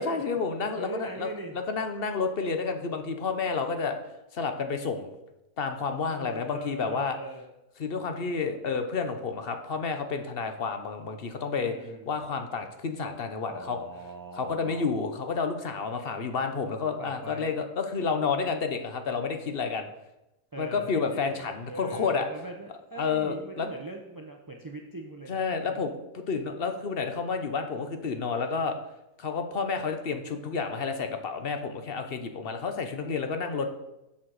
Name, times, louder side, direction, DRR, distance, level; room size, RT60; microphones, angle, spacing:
voice 1, 0.0-4.0 4.3-5.1 5.6-7.2 7.8-11.7 12.1-13.8 14.4-19.9 20.6-22.3 23.0-23.7 25.3-28.7 29.2-33.7, left 5 dB, 45° left, 7 dB, 1.0 m, -30 dB
voice 2, 0.8-1.6 6.0-7.5 11.6-12.1 13.4-14.9 17.0-17.5 20.5-25.8, right 2 dB, 30° right, 2 dB, 0.4 m, -41 dB
7.5 x 5.9 x 6.3 m, 0.93 s
omnidirectional pair, 1.5 m